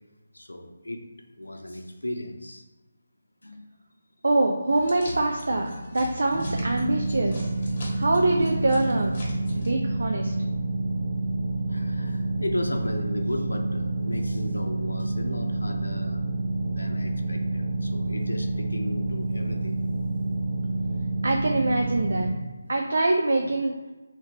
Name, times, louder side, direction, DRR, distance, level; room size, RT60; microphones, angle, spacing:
voice 1, 0.3-1.0 1.4-2.6 3.4-3.6 11.7-16.2 16.7-19.8, left 1 dB, 85° left, 3 dB, 0.6 m, -35 dB
voice 2, 4.2-7.4 8.0-9.1 9.5-10.3 21.2-22.3 22.7-23.7, right 2 dB, 65° right, 2 dB, 0.4 m, -24 dB
sound 1, 4.7-9.7, left 1 dB, 40° left, 1.2 m, -39 dB
sound 2, 6.3-22.3, right 2 dB, 40° right, 1.0 m, -28 dB
3.5 x 2.8 x 2.9 m, 1.1 s
figure-of-eight pair, 155°, 0 cm